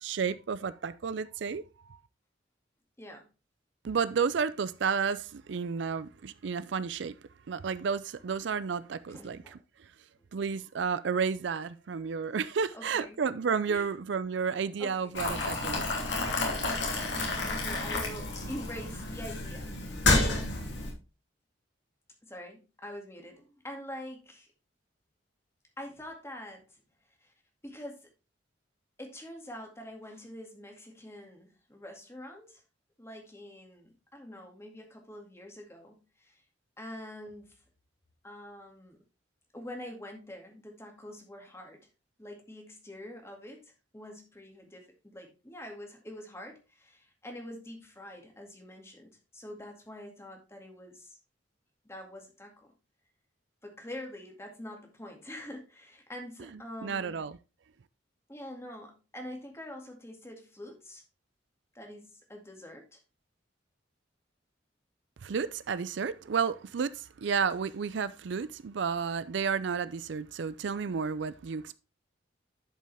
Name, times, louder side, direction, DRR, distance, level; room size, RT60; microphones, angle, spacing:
voice 1, 0.0-1.6 3.8-7.1 7.5-9.4 10.3-15.8 56.8-57.3 65.2-71.7, right 6 dB, 70° right, 0.4 m, -31 dB
voice 2, 9.1-9.6 12.7-13.2 13.7-13.9 14.4-14.5 14.8-15.1 17.5-20.8 22.2-24.5 25.8-26.8 27.2-27.3 27.6-28.1 29.0-32.6 33.0-36.4 36.8-37.5 38.2-39.0 39.5-41.9 42.2-51.2 51.8-52.7 53.6-57.3 58.3-61.0 61.7-63.0, left 1 dB, 15° left, 2.1 m, -45 dB
Boiling, 15.1-20.9, left 2 dB, 65° left, 2.9 m, -30 dB
11.0 x 5.4 x 3.4 m
head